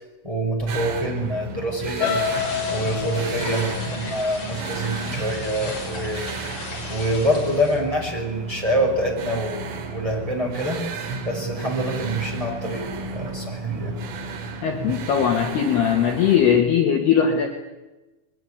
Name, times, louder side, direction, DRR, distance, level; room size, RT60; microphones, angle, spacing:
voice 1, 0.2-2.2 2.7-6.2 6.9-10.8 11.2-14.0, equal, 5° right, 0 dB, 5.5 m, -26 dB
sound 1, 0.7-16.6, right 4 dB, 75° right, 5.4 m, -33 dB
sound 2, 2.0-6.0 6.4-6.7 7.1-7.2, left 7 dB, 85° left, 5.5 m, -30 dB
sound 3, 2.0-7.8, left 2 dB, 30° left, 6.3 m, -35 dB
voice 2, 14.6-17.5, left 8 dB, 60° left, 3 dB, 3.3 m, -19 dB
22.5 x 21.0 x 10.0 m, 1.1 s
omnidirectional pair, 6.0 m